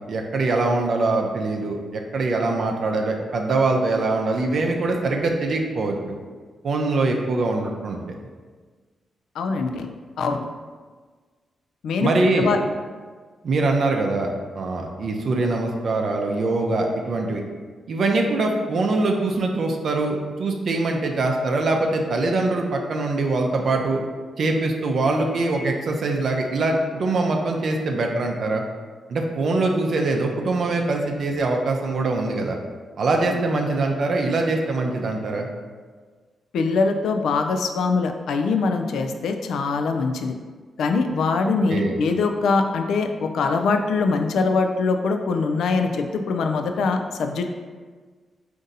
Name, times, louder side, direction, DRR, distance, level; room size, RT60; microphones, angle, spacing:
voice 1, 0.1-6.0 6.6-8.0 12.0-12.5 13.4-17.4 17.9-24.0 24.4-28.6 29.1-32.6 33.0-35.5 41.7-42.0, right 2 dB, 65° right, 2 dB, 0.5 m, -23 dB
voice 2, 9.4-9.9 10.2-10.5 11.8-12.1 12.4-12.6 36.5-40.3 40.8-47.5, left 4 dB, 80° left, 5 dB, 0.3 m, -23 dB
3.9 x 2.6 x 3.9 m, 1.5 s
cardioid pair, 70°, 0 cm